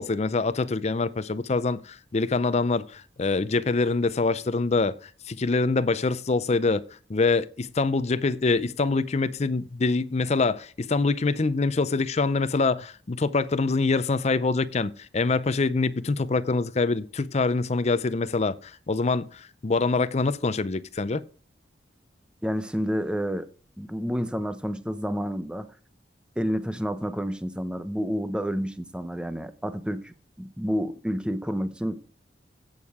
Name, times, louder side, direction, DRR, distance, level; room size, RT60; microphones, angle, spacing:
voice 1, 0.0-6.8 7.1-21.2, left 3 dB, 35° left, 0.5 m, -25 dB
voice 2, 22.4-23.5 23.8-25.7 26.4-32.0, equal, 5° right, 0.7 m, -29 dB
16.0 x 6.4 x 3.6 m
head